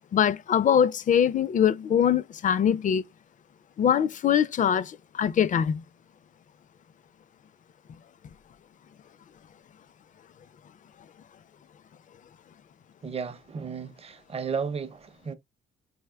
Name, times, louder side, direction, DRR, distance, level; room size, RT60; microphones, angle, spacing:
voice 1, 0.1-3.0 3.8-5.8, left 8 dB, 40° left, 0.4 m, -23 dB
voice 2, 13.0-15.3, right 6 dB, 30° right, 0.6 m, -34 dB
4.1 x 3.4 x 2.2 m
cardioid pair, 90°, 20 cm